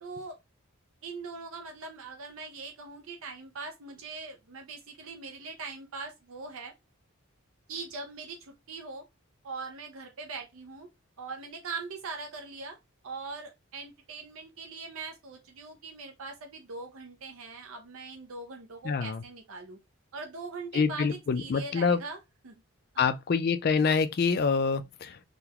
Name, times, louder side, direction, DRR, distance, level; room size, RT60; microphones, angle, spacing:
voice 1, 0.0-0.4 1.0-6.7 7.7-9.0 9.4-10.9 11.2-12.8 13.0-19.8 20.1-22.5 22.9-23.1, right 4 dB, 65° right, 0.6 m, -41 dB
voice 2, 18.8-19.2 20.7-22.0 23.0-25.2, left 5 dB, 45° left, 0.4 m, -26 dB
3.8 x 2.2 x 2.8 m
head